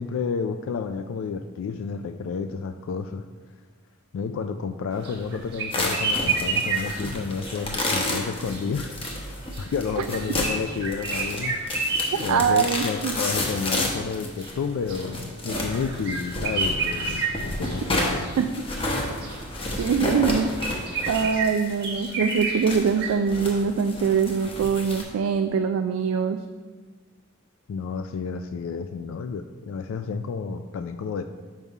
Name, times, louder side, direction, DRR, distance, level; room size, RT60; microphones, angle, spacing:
voice 1, 0.0-3.2 4.1-8.9 9.6-11.9 12.2-18.3 27.7-31.2, left 5 dB, 65° left, 8 dB, 0.3 m, -31 dB
sound 1, 4.9-23.1, right 3 dB, 50° right, 1.3 m, -31 dB
sound 2, 5.7-25.0, left 1 dB, 25° left, 0.8 m, -31 dB
voice 2, 12.3-13.2 18.4-18.5 19.8-20.5 21.1-26.4, right 6 dB, 75° right, 7 dB, 0.3 m, -23 dB
5.5 x 5.4 x 4.7 m, 1.4 s
head